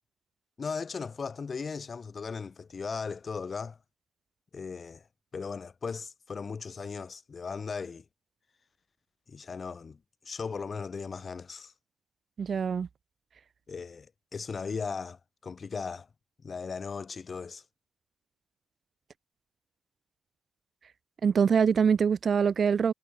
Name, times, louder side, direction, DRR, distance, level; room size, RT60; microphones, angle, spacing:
voice 1, 0.6-3.8 4.5-5.0 5.3-8.0 9.3-10.0 10.2-11.7 13.7-16.1 16.4-17.6, left 5 dB, 45° left, 4.6 m, -37 dB
voice 2, 12.4-12.9 21.2-22.9, right 6 dB, 55° right, 0.4 m, -24 dB
supercardioid pair, 50°, 0 cm